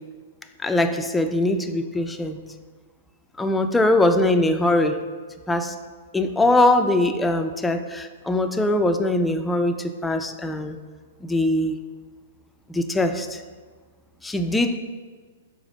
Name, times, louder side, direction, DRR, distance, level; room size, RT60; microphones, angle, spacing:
voice 1, 0.6-2.4 3.4-5.1 5.5-5.8 6.1-10.8 11.2-11.8 12.7-13.4 14.2-14.8, left 2 dB, 10° left, 7 dB, 0.4 m, -22 dB
4.9 x 3.9 x 5.2 m, 1.5 s
hypercardioid pair, 120°, 0 cm